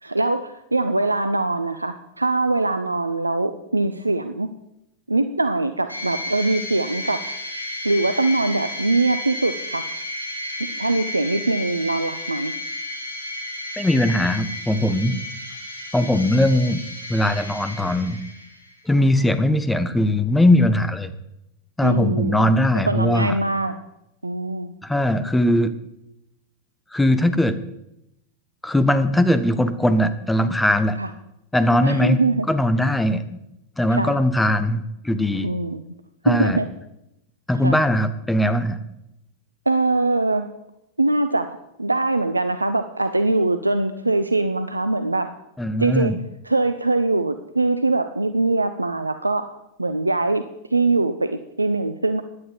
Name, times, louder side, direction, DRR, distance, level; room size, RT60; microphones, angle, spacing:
voice 1, 0.0-4.5 5.1-7.2 7.8-9.8 10.8-12.5 21.8-22.5 22.9-23.7 24.2-24.7 31.0-31.1 31.8-32.5 33.9-34.2 35.4-35.8 36.2-36.7 37.6-37.8 39.7-40.5 41.0-45.3 45.8-46.1 46.4-49.5 49.8-50.4 50.7-52.2, right 2 dB, 85° right, 10 dB, 0.7 m, -22 dB
sound 1, 5.9-18.7, left 1 dB, 85° left, 3.9 m, -32 dB
voice 2, 13.8-15.2 15.9-16.8 17.1-18.2 18.8-21.1 21.8-23.4 24.8-25.7 26.9-27.6 28.6-31.0 31.5-32.2 32.5-33.2 33.8-35.5 36.2-36.6 37.5-38.8 45.6-46.2, left 1 dB, 5° left, 11 dB, 1.3 m, -20 dB
16.5 x 11.0 x 5.2 m, 0.86 s
figure-of-eight pair, 90°, 0 cm